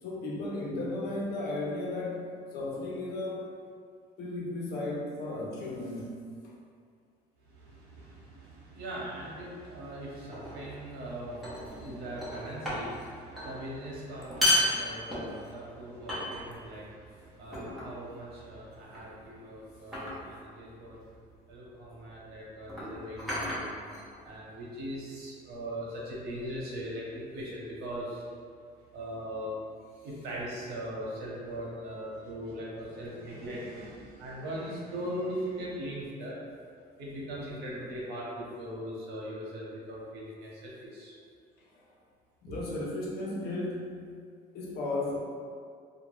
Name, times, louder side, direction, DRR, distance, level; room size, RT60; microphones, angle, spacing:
voice 1, 0.0-3.5 4.2-6.2 6.4-6.5 11.6-12.1 18.9-19.1 41.7-41.8 42.4-44.0 44.5-45.2, left 2 dB, 70° left, -3 dB, 0.6 m, -35 dB
voice 2, 7.4-21.0 21.5-23.6 24.2-28.2 28.9-29.6 30.0-36.4 37.0-41.1 42.4-42.7, equal, 75° right, -5 dB, 0.8 m, -40 dB
sound 1, 10.3-10.6 11.4-11.9 12.2-13.1 13.3-13.5 14.2-15.6 16.1-16.7 17.5-18.0 18.9-19.2 19.9-20.3 21.5-21.7 22.6-24.4, left 1 dB, ahead, 0.8 m, -32 dB
2.3 x 2.1 x 3.1 m, 2.1 s
cardioid pair, 110°, 17 cm